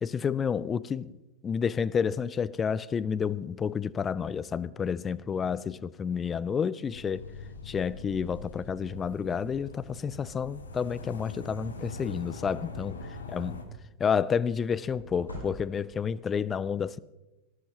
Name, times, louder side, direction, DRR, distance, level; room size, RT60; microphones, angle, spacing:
voice 1, 0.0-1.1 1.4-7.3 7.6-13.0 13.3-13.6 14.0-17.0, left 7 dB, 20° left, 0.5 m, -30 dB
sound 1, 6.9-13.6, left 2 dB, 70° left, 2.1 m, -42 dB
sound 2, 12.2-13.2 14.9-16.1, equal, 90° right, 5.3 m, -46 dB
19.0 x 19.0 x 3.0 m
figure-of-eight pair, 90°, 0 cm